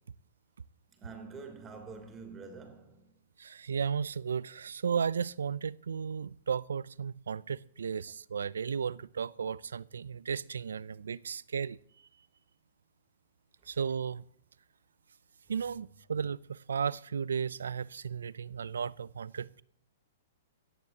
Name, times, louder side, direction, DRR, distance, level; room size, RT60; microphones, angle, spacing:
voice 1, 0.9-3.1, right 4 dB, 20° right, 3.2 m, -46 dB
voice 2, 3.4-11.8 13.7-14.2 15.5-19.6, right 6 dB, 85° right, 0.4 m, -34 dB
17.0 x 14.0 x 2.9 m
hypercardioid pair, 125°, 0 cm